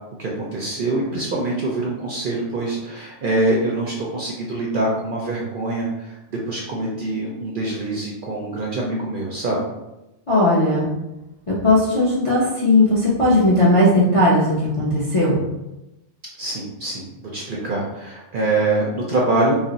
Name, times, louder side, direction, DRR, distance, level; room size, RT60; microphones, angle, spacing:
voice 1, 0.2-9.6 16.4-19.6, right 2 dB, 60° right, -3 dB, 0.5 m, -24 dB
voice 2, 10.3-10.9 11.5-15.4, left 1 dB, 45° left, -7 dB, 0.4 m, -17 dB
2.4 x 2.0 x 3.8 m, 0.97 s
omnidirectional pair, 1.3 m